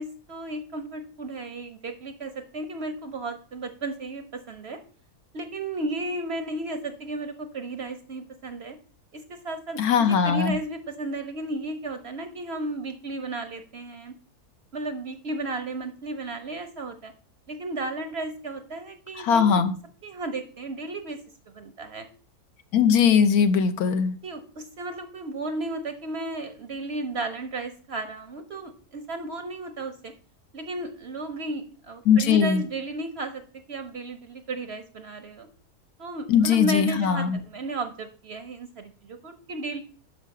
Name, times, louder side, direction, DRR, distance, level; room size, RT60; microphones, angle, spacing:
voice 1, 0.0-4.8 5.3-8.8 9.1-14.2 14.7-17.1 17.5-19.6 20.0-21.2 21.5-22.1 24.2-30.1 30.5-35.5 36.0-39.8, right 2 dB, 50° right, 8 dB, 0.8 m, -34 dB
voice 2, 9.8-10.6 19.2-19.7 22.7-24.2 32.1-32.6 36.3-37.4, left 7 dB, 70° left, 9 dB, 1.2 m, -20 dB
6.4 x 5.8 x 6.4 m, 0.42 s
omnidirectional pair, 1.7 m